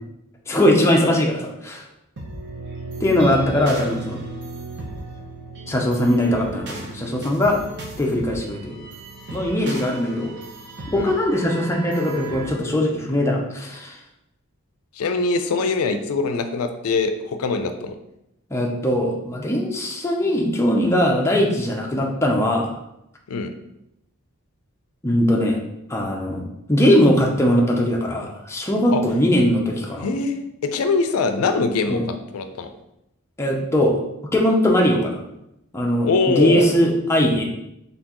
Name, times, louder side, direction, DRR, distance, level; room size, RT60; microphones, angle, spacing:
voice 1, 0.5-1.8 3.0-4.2 5.7-7.6 8.0-8.8 9.3-10.3 10.9-14.0 18.5-22.7 25.0-25.6 25.9-30.1 31.9-32.1 33.4-34.0 34.3-35.2 35.7-37.4, left 1 dB, 10° left, 0 dB, 0.5 m, -20 dB
sound 1, 2.2-12.5, right 2 dB, 50° right, 0.7 m, -35 dB
voice 2, 15.0-18.0 23.3-23.5 28.9-29.0 30.0-32.7 36.0-36.7, left 4 dB, 80° left, 8 dB, 0.4 m, -23 dB
4.3 x 3.4 x 2.9 m, 0.84 s
head